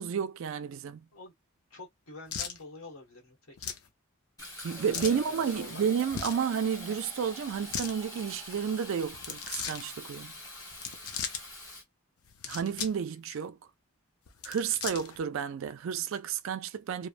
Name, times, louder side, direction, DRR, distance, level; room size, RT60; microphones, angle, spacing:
voice 1, 0.0-1.0 4.6-10.3 12.4-13.6 14.4-17.1, right 7 dB, 60° right, 0.3 m, -31 dB
voice 2, 1.7-3.8 5.1-5.8, left 2 dB, 70° left, 1.2 m, -47 dB
sound 1, 2.3-2.6 3.6-3.9 4.9-5.2 6.1-6.4 7.5-7.9 9.1-9.8 10.7-11.4 12.2-13.0 13.3-13.4 14.3-15.2, left 7 dB, 85° left, 0.6 m, -37 dB
Fill (with liquid), 4.4-11.8, left 1 dB, 15° left, 1.1 m, -45 dB
3.1 x 2.0 x 2.5 m
head